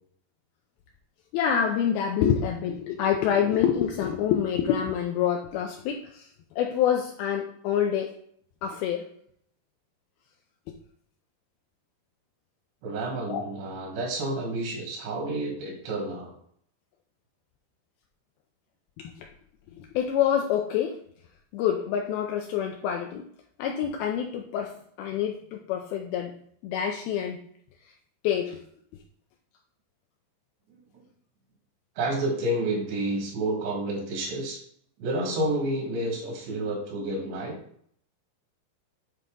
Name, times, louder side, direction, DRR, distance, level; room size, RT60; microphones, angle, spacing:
voice 1, 1.3-6.3 6.6-8.2 8.6-9.1 13.3-13.4 19.0-19.3 19.8-21.0 21.5-23.3 23.6-26.4 26.6-27.4 28.2-28.6, left 9 dB, 85° left, 2 dB, 2.2 m, -27 dB
voice 2, 12.8-16.3 30.7-31.0 32.0-34.6 35.0-37.6, right 1 dB, 80° right, -1 dB, 4.0 m, -30 dB
9.4 x 4.0 x 3.8 m, 0.64 s
omnidirectional pair, 4.9 m